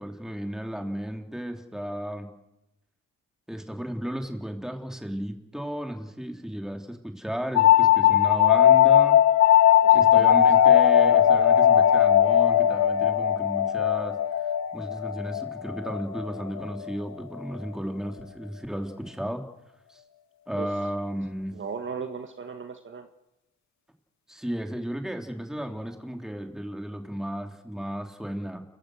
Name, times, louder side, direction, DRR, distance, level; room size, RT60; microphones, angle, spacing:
voice 1, 0.0-2.3 3.5-9.2 9.9-14.2 14.7-19.4 19.9-20.0 20.5-21.5 24.3-28.6, equal, ahead, 4 dB, 3.3 m, -34 dB
sound 1, 7.5-16.9, left 10 dB, 65° left, 1.6 m, -19 dB
voice 2, 9.8-10.2 20.6-20.7 21.5-23.1, right 5 dB, 40° right, 6 dB, 1.7 m, -37 dB
29.5 x 15.5 x 6.5 m, 0.92 s
cardioid pair, 90°, 30 cm